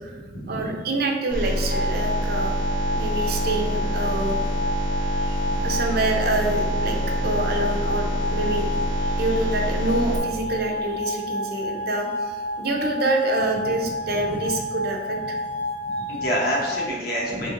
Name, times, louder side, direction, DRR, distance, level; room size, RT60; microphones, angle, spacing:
voice 1, 0.5-2.6 2.9-4.4 5.2-7.0 7.2-15.4 16.1-16.2, right 2 dB, 50° right, 1 dB, 0.5 m, -27 dB
sound 1, 1.3-10.2, equal, 85° left, 1.5 m, -26 dB
sound 2, 1.7-16.9, left 1 dB, 70° left, 0.5 m, -30 dB
voice 2, 15.8-17.5, equal, 50° left, -4 dB, 1.1 m, -27 dB
3.8 x 3.2 x 3.7 m, 1.3 s
head